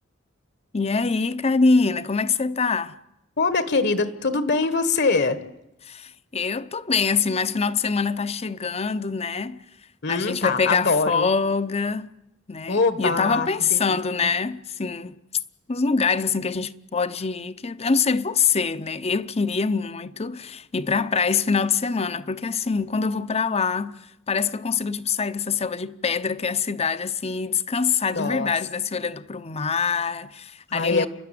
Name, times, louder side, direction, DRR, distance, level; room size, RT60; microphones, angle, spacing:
voice 1, 0.7-3.0 5.8-9.6 10.1-12.1 12.5-15.2 15.7-31.1, left 5 dB, 30° left, 0.7 m, -24 dB
voice 2, 3.4-5.4 10.0-11.3 12.7-14.3 28.1-28.5 30.7-31.1, left 3 dB, 60° left, 1.3 m, -23 dB
29.0 x 12.0 x 9.3 m
head